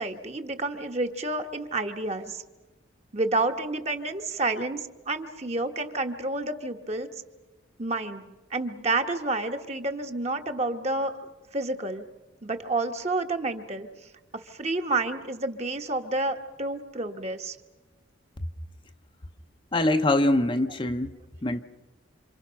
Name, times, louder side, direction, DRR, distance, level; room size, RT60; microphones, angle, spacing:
voice 1, 0.0-2.4 3.1-7.1 7.8-8.2 8.5-12.0 12.4-13.9 14.5-17.6, right 2 dB, 35° right, 5 dB, 1.3 m, -29 dB
voice 2, 19.7-21.1 21.4-21.6, left 1 dB, 25° left, 7 dB, 0.7 m, -23 dB
27.5 x 26.5 x 5.8 m, 1.2 s
head